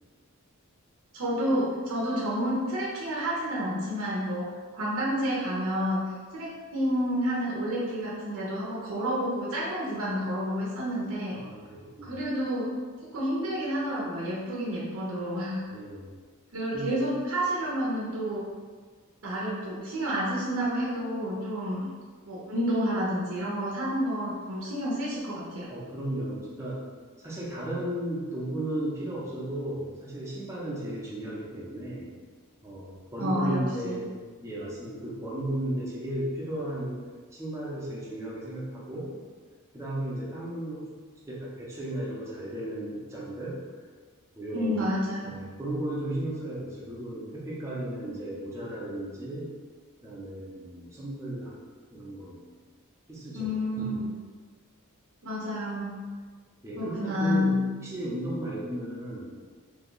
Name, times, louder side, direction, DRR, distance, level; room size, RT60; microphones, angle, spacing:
voice 1, 1.1-6.0 6.3-11.4 12.0-12.7 13.1-15.6 16.5-18.4 19.2-21.9 22.3-25.7 33.2-34.0 44.5-45.5 53.3-54.1 55.2-56.0 56.8-57.7, equal, 65° right, -6 dB, 0.6 m, -29 dB
voice 2, 11.3-12.2 15.7-16.1 16.7-17.0 25.7-26.8 27.2-32.1 32.6-34.1 34.4-37.0 37.3-39.2 39.7-40.9 41.3-43.6 44.3-44.9 45.2-49.6 50.0-51.5 51.9-52.4 53.1-53.5 53.8-54.0 56.6-57.6 57.8-59.3, right 1 dB, 15° right, -6 dB, 0.6 m, -35 dB
2.7 x 2.3 x 3.8 m, 1.5 s
head